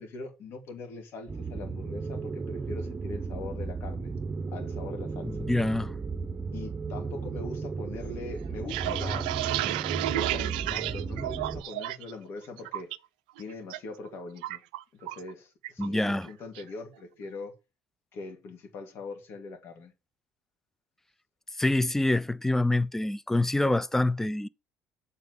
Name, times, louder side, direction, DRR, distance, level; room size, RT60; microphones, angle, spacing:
voice 1, 0.0-4.1 4.5-5.4 6.5-9.3 10.0-12.9 13.4-14.6 14.9-17.5 18.1-19.9, left 3 dB, 60° left, 2.5 m, -41 dB
sound 1, 1.3-11.6, right 4 dB, 25° right, 0.9 m, -35 dB
voice 2, 5.2-5.9 15.8-16.3 21.6-24.5, left 2 dB, 10° left, 0.5 m, -26 dB
sound 2, 8.4-12.1 12.4-13.0 13.4-13.8 14.0-15.3 15.6-15.9 16.2-16.7, right 16 dB, 85° right, 0.4 m, -32 dB
7.6 x 4.2 x 5.4 m
hypercardioid pair, 65°, 4 cm